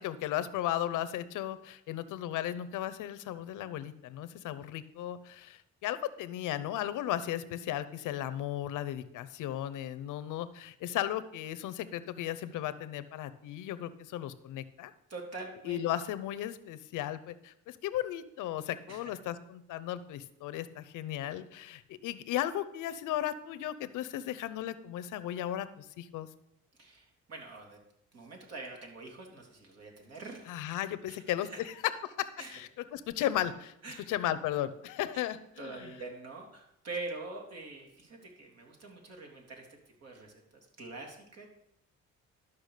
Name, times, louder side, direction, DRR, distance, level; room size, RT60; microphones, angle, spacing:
voice 1, 0.0-14.9 15.6-26.3 30.5-33.7 34.1-35.9, left 12 dB, 90° left, 12 dB, 0.8 m, -35 dB
voice 2, 15.1-15.8 18.9-19.0 26.8-27.8 28.1-30.5 31.1-31.6 32.4-32.6 33.8-34.1 35.1-35.3 35.6-39.7 40.0-41.5, right 3 dB, 55° right, 1 dB, 3.3 m, -44 dB
12.0 x 5.8 x 6.6 m, 0.78 s
cardioid pair, 90°, 30 cm